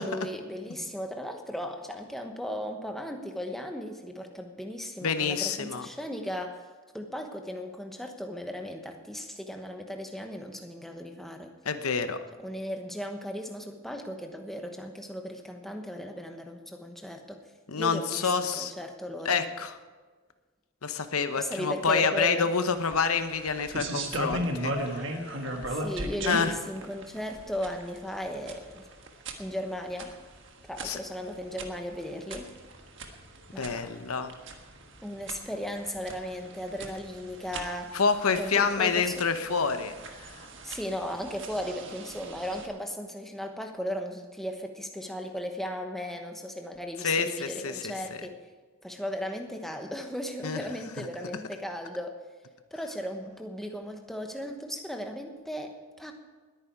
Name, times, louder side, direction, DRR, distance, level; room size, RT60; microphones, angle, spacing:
voice 1, 0.0-6.6 6.9-11.5 12.4-17.4 17.8-19.4 21.4-22.5 25.7-28.9 29.4-30.1 30.7-32.5 33.5-34.0 35.0-38.0 38.3-39.1 40.6-48.4 48.8-52.2 52.7-56.1, equal, ahead, 3 dB, 1.1 m, -36 dB
voice 2, 5.0-5.9 11.6-12.2 17.7-18.7 19.2-19.7 20.8-25.2 26.2-26.6 30.8-31.0 33.6-34.3 37.9-39.9 47.0-47.9 50.4-50.6 51.0-51.1, left 5 dB, 85° left, 9 dB, 0.9 m, -27 dB
sound 1, 22.8-42.7, right 1 dB, 55° right, 1.5 m, -39 dB
20.0 x 9.3 x 4.7 m, 1.4 s
head